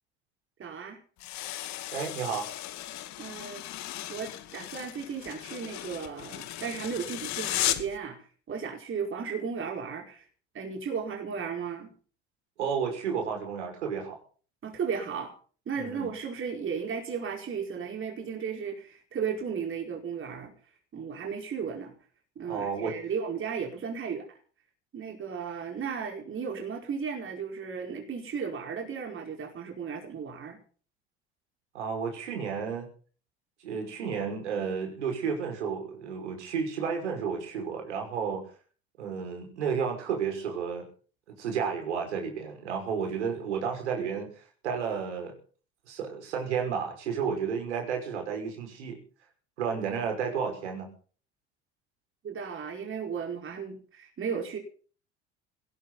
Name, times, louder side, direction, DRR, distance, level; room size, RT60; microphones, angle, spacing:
voice 1, 0.6-1.0 3.2-3.6 4.1-10.2 10.5-11.9 14.6-15.3 15.6-20.5 20.9-21.9 22.3-24.4 24.9-30.6 52.2-54.6, right 6 dB, 35° right, 2 dB, 4.9 m, -35 dB
sound 1, 1.2-8.0, left 14 dB, 50° left, 2.2 m, -36 dB
voice 2, 1.9-2.5 12.6-14.2 15.7-16.1 22.4-22.9 31.7-32.9 33.6-38.4 39.0-40.9 41.3-45.3 45.9-49.0 49.6-50.9, right 6 dB, 75° right, 3 dB, 5.9 m, -32 dB
19.5 x 17.5 x 4.1 m, 0.41 s
figure-of-eight pair, 65°, 35 cm